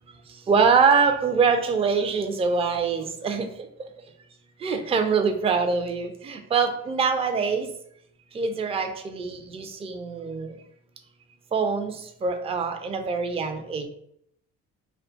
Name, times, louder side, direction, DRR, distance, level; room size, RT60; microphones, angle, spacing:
voice 1, 0.3-3.5 4.6-7.7 8.3-10.5 11.5-13.9, right 5 dB, 15° right, 6 dB, 0.3 m, -24 dB
2.3 x 2.2 x 2.6 m, 0.72 s
hypercardioid pair, 55°, 37 cm